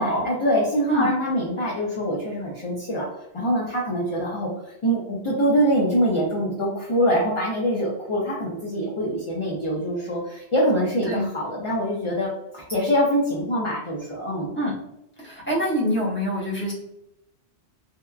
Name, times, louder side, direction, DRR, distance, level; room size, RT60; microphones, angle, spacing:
voice 1, 0.0-3.1 3.3-4.5 4.8-14.6, equal, 40° left, -5 dB, 0.5 m, -24 dB
voice 2, 15.2-16.7, equal, 10° left, -7 dB, 0.8 m, -25 dB
2.7 x 2.3 x 2.3 m, 0.85 s
omnidirectional pair, 1.1 m